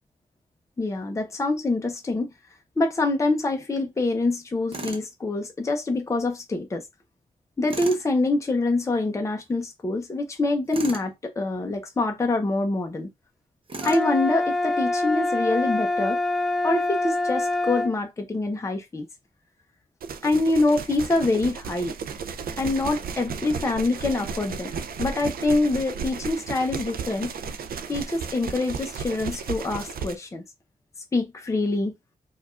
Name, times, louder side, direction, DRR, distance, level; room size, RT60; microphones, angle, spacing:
voice 1, 0.8-2.3 2.8-6.8 7.6-13.1 13.8-16.2 16.6-19.1 20.2-21.9 22.6-24.7 25.0-27.3 27.9-30.4 31.1-31.9, left 2 dB, 20° left, 0.6 m, -25 dB
Tools, 4.7-5.1 7.7-8.1 10.7-11.1 13.7-14.1, right 3 dB, 35° right, 0.7 m, -35 dB
sound 1, 13.8-17.9, left 2 dB, ahead, 1.0 m, -25 dB
sound 2, 20.0-30.2, right 6 dB, 85° right, 0.4 m, -34 dB
4.5 x 2.3 x 2.4 m
wide cardioid pair, 140°, 15 cm